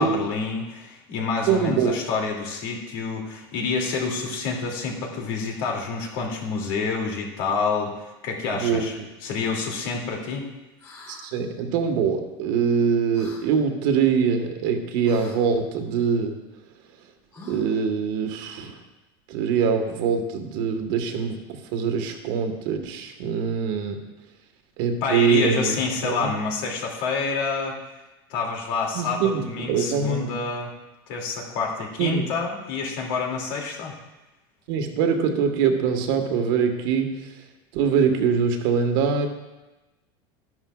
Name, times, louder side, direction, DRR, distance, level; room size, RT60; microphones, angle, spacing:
voice 1, 0.0-8.9 9.2-10.5 25.0-27.8 28.3-30.7 31.1-33.9, left 4 dB, 65° left, 0 dB, 2.5 m, -28 dB
voice 2, 1.5-2.0 8.5-8.8 11.1-16.4 17.5-18.7 19.3-24.0 24.8-25.7 26.0-26.3 28.9-30.3 32.0-32.3 34.7-37.2 37.7-39.3, right 6 dB, 65° right, 5 dB, 1.5 m, -23 dB
sound 1, 10.8-11.2 13.1-13.4 15.0-15.4 17.3-17.8, left 2 dB, 25° left, 3.4 m, -43 dB
12.5 x 11.0 x 2.4 m, 1.1 s
supercardioid pair, 140°, 13 cm